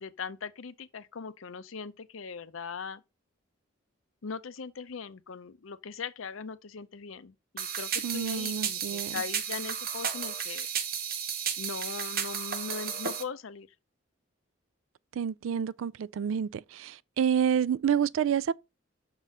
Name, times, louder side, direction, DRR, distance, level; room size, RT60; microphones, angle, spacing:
voice 1, 0.0-3.0 4.2-10.7 11.6-13.7, left 5 dB, 80° left, 0.6 m, -40 dB
sound 1, 7.6-13.2, right 8 dB, 50° right, 0.9 m, -33 dB
voice 2, 8.0-9.1 15.2-18.5, right 8 dB, 75° right, 0.3 m, -28 dB
6.1 x 4.0 x 5.3 m
head